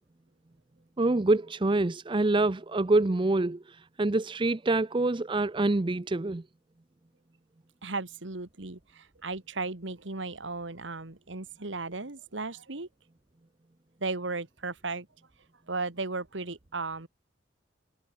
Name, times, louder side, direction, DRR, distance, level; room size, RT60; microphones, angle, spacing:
voice 1, 1.0-3.6 4.0-6.4, right 2 dB, 25° right, 0.6 m, -26 dB
voice 2, 7.8-12.9 14.0-15.1 15.7-17.1, right 3 dB, 80° right, 2.0 m, -35 dB
head